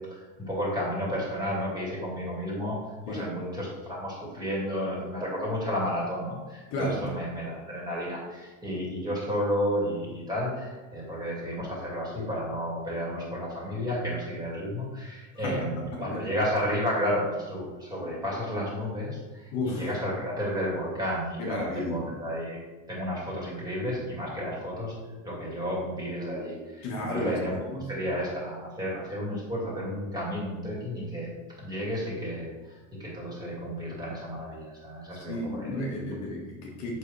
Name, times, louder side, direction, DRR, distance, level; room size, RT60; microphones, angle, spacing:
voice 1, 0.1-2.8 3.1-22.6 22.9-24.9 25.2-27.6 27.9-31.3 31.6-35.8, equal, 10° right, -5 dB, 2.4 m, -32 dB
voice 2, 15.4-16.2 19.5-19.9 21.4-22.1 26.8-27.8 35.1-37.0, left 1 dB, 40° left, -2 dB, 1.5 m, -33 dB
7.6 x 6.1 x 3.3 m, 1.2 s
supercardioid pair, 150°, 40 cm